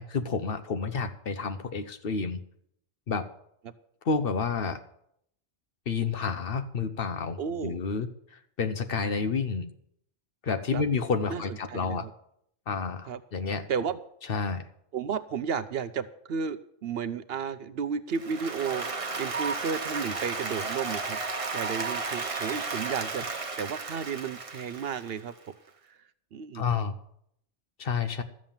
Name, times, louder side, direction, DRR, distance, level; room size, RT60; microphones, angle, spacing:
voice 1, 0.0-2.4 3.1-3.3 4.0-4.8 5.9-8.1 8.6-9.7 10.4-12.1 12.7-13.7 14.3-14.6 22.9-23.0 26.5-27.0 27.8-28.2, left 5 dB, 55° left, 10 dB, 1.0 m, -30 dB
voice 2, 7.4-7.8 10.7-10.8 11.3-11.4 11.7-12.1 13.1-13.2 13.7-14.0 14.9-18.9 19.2-21.2 21.5-23.2 23.6-25.3 26.3-26.6, right 6 dB, 60° right, 13 dB, 0.8 m, -33 dB
Applause, 18.1-25.3, right 4 dB, 30° right, 1.0 m, -33 dB
13.5 x 7.4 x 7.2 m, 0.72 s
omnidirectional pair, 1.2 m